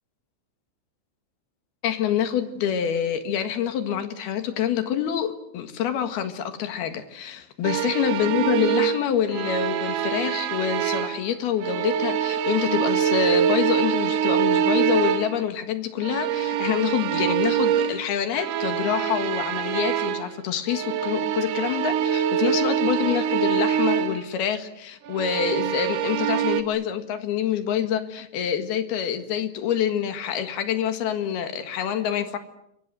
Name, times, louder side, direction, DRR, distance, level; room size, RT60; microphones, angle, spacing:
voice 1, 1.8-32.4, left 9 dB, 65° left, 8 dB, 3.3 m, -26 dB
sound 1, 7.6-11.3 11.6-15.5 16.0-20.4 20.7-24.2 25.0-26.6, right 9 dB, 70° right, 3.0 m, -24 dB
28.0 x 23.5 x 7.9 m, 0.77 s
omnidirectional pair, 5.5 m